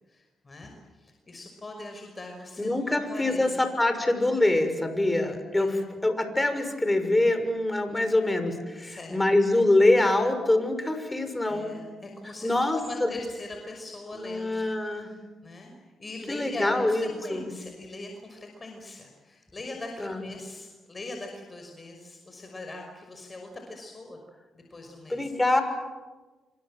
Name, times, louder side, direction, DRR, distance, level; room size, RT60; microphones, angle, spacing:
voice 1, 0.1-3.6 5.6-5.9 8.8-9.2 11.5-14.7 15.0-15.7 16.0-24.2 24.7-25.3, left 2 dB, 35° left, 3 dB, 5.8 m, -41 dB
voice 2, 2.6-11.7 12.4-13.1 14.1-15.1 16.3-17.5 20.0-20.2 25.1-25.6, left 2 dB, 15° left, 8 dB, 6.4 m, -24 dB
28.0 x 26.0 x 7.8 m, 1.3 s
cardioid pair, 65°, 0 cm